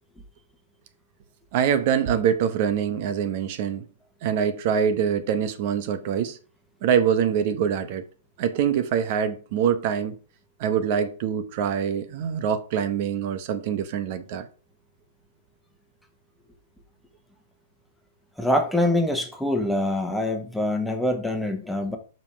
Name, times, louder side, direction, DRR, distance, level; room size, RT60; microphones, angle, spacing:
voice 1, 1.5-3.8 4.2-6.4 6.8-8.0 8.4-10.1 10.6-14.4, right 8 dB, 50° right, 0.9 m, -24 dB
voice 2, 18.4-22.0, left 1 dB, ahead, 1.3 m, -24 dB
5.4 x 5.3 x 5.7 m
hypercardioid pair, 130°, 0 cm